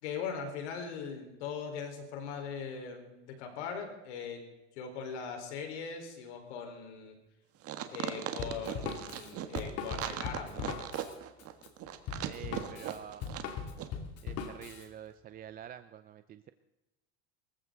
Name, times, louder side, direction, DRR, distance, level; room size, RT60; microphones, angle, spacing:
voice 1, 0.0-4.5 4.8-7.1 7.9-11.0, left 6 dB, 85° left, 4 dB, 4.5 m, -40 dB
sound 1, 7.6-13.5 13.8-13.9, right 12 dB, 45° right, 1.6 m, -38 dB
Drum kit, 8.4-14.9, left 6 dB, 45° left, 2.8 m, -40 dB
voice 2, 12.2-13.5 14.2-16.5, right 10 dB, 25° right, 11 dB, 0.6 m, -47 dB
24.0 x 15.0 x 4.0 m, 1.0 s
supercardioid pair, 135°, 33 cm